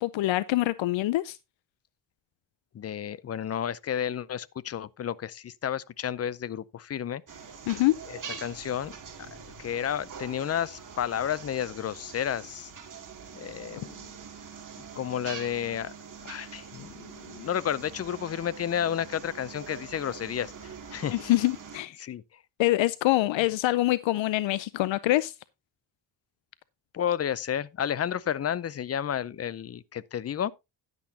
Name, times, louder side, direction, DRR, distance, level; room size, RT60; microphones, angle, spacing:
voice 1, 0.0-1.4 7.7-7.9 21.1-22.0 22.6-25.3, left 16 dB, 80° left, 0.6 m, -25 dB
voice 2, 2.7-7.2 8.3-9.3 9.6-12.7 13.3-14.1 15.0-15.9 16.2-21.2 22.0-22.4 26.9-30.5, left 9 dB, 35° left, 0.5 m, -31 dB
sound 1, 7.3-21.8, right 6 dB, 45° right, 2.3 m, -44 dB
10.5 x 10.0 x 2.7 m
cardioid pair, 135°, 45 cm